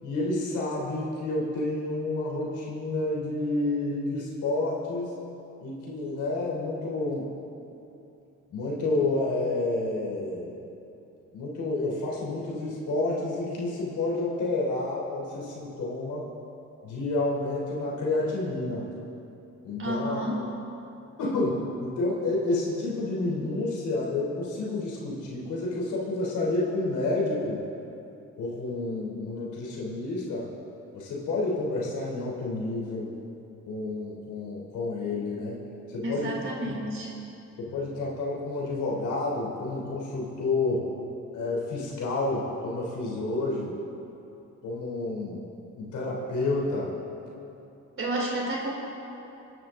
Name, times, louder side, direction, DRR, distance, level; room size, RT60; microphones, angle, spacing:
voice 1, 0.0-5.1 5.6-7.3 8.5-10.5 11.3-16.3 16.8-18.9 19.6-20.2 21.2-27.6 28.4-30.5 30.9-33.1 33.7-36.4 36.6-36.8 37.6-40.8 41.3-43.7 44.6-45.4 45.8-46.9, left 2 dB, 75° left, -4 dB, 3.6 m, -29 dB
voice 2, 19.8-20.4 36.0-37.1 48.0-48.7, right 1 dB, 45° right, -2 dB, 3.7 m, -30 dB
23.0 x 10.5 x 3.8 m, 2.7 s
cardioid pair, 90°, 30 cm